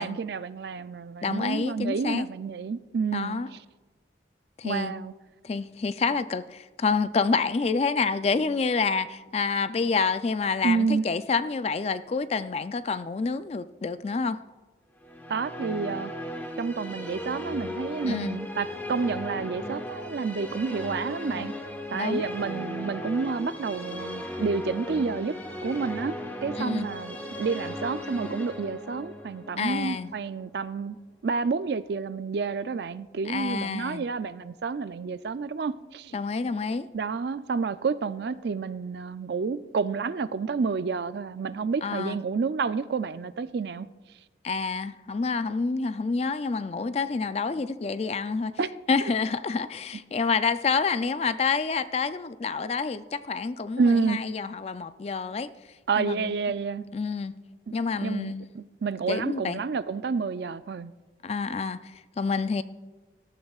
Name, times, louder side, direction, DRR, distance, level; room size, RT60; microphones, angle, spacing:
voice 1, 0.0-3.6 4.6-5.1 10.6-11.0 15.3-16.1 16.6-21.5 21.9-25.4 25.6-31.0 31.2-36.2 36.9-43.9 48.6-48.7 49.0-49.1 53.8-54.2 55.9-56.9 58.0-60.9, right 5 dB, 65° right, 0.4 m, -29 dB
voice 2, 1.2-2.3 3.1-3.5 4.6-4.9 5.4-14.4 18.0-18.4 21.9-22.2 26.6-26.9 29.6-30.1 33.3-34.1 36.1-36.9 41.8-42.2 44.4-48.5 48.9-55.5 56.0-56.4 56.9-57.3 57.7-58.4 59.1-59.6 61.2-62.6, left 4 dB, 35° left, 0.3 m, -28 dB
sound 1, 15.0-31.1, left 1 dB, 10° left, 1.1 m, -37 dB
18.0 x 13.0 x 2.4 m
head